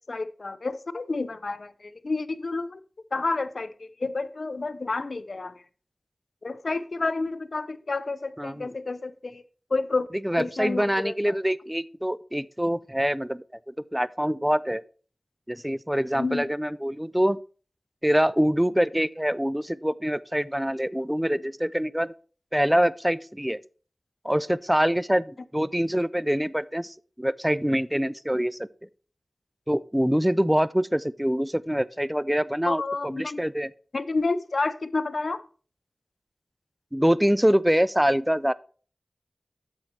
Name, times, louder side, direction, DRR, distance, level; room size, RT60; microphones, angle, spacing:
voice 1, 0.1-2.8 3.1-3.7 4.0-5.5 6.4-9.4 9.7-10.1 10.4-11.4 16.2-16.4 32.7-33.4 33.9-35.4, left 3 dB, 65° left, 0.5 m, -29 dB
voice 2, 8.4-8.7 10.2-14.8 15.5-17.4 18.0-22.1 22.5-23.6 24.2-28.7 29.7-33.7 36.9-38.5, equal, 5° right, 0.3 m, -25 dB
8.9 x 7.2 x 3.2 m
cardioid pair, 45°, 0 cm